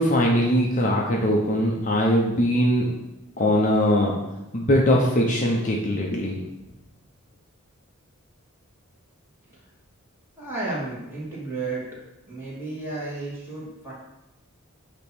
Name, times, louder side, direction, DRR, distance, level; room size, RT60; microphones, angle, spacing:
voice 1, 0.0-2.9 3.4-4.1 4.5-6.4, equal, 35° left, -1 dB, 0.8 m, -21 dB
voice 2, 10.4-11.8 12.3-13.9, right 3 dB, 10° right, -8 dB, 2.6 m, -32 dB
8.7 x 3.0 x 6.2 m, 0.93 s
head